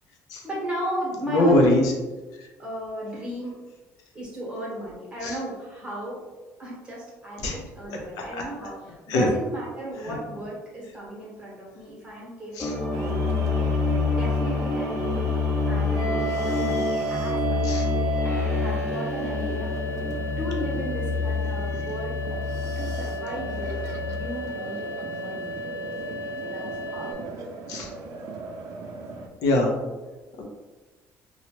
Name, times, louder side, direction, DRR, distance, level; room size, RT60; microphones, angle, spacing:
voice 1, 0.4-1.8 2.6-3.5 4.1-6.2 6.6-13.6 14.0-15.2 15.7-18.1 18.6-19.7 20.4-22.2 22.8-25.5 26.4-26.7 26.9-27.2, right 1 dB, 15° right, -5 dB, 1.3 m, -35 dB
voice 2, 1.3-1.9 5.2-5.3 7.4-7.6 7.9-8.0 9.1-9.3 10.1-10.2 12.6-12.7 17.6-17.8 27.7-27.9 29.4-29.7 30.4-30.5, left 1 dB, 85° left, 0 dB, 0.7 m, -22 dB
sound 1, 12.6-24.2, left 4 dB, 15° left, 0.4 m, -27 dB
sound 2, 12.9-29.3, right 3 dB, 65° right, 0.4 m, -39 dB
sound 3, 16.0-27.1, right 2 dB, 35° left, 1.1 m, -33 dB
2.8 x 2.4 x 3.0 m, 1.2 s
cardioid pair, 120°, 6 cm